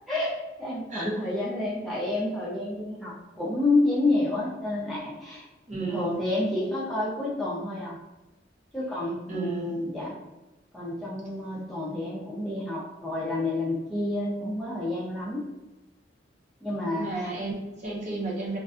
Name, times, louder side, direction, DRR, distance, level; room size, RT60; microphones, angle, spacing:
voice 1, 0.1-5.5 5.8-8.0 8.7-10.2 10.7-15.4 16.6-17.3, left 2 dB, ahead, -8 dB, 0.4 m, -29 dB
voice 2, 5.7-6.1 9.3-9.8 17.0-18.6, right 2 dB, 40° right, -4 dB, 0.7 m, -33 dB
3.4 x 2.1 x 2.4 m, 1.1 s
head